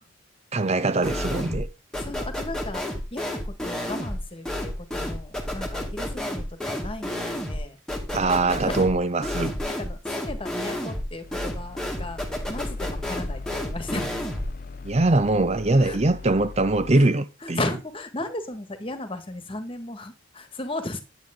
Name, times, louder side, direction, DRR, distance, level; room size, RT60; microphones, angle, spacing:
voice 1, 0.5-1.7 8.1-9.5 14.8-17.6, right 2 dB, 35° right, 0.6 m, -22 dB
sound 1, 1.0-1.7 1.9-14.5, left 1 dB, 5° left, 2.1 m, -31 dB
voice 2, 2.0-7.8 8.1-8.3 8.6-8.9 9.8-14.1 15.8-16.2 16.9-17.1 17.4-21.0, left 2 dB, 25° left, 1.8 m, -35 dB
sound 2, 11.2-17.0, left 3 dB, 45° left, 0.5 m, -40 dB
10.5 x 9.0 x 3.8 m
head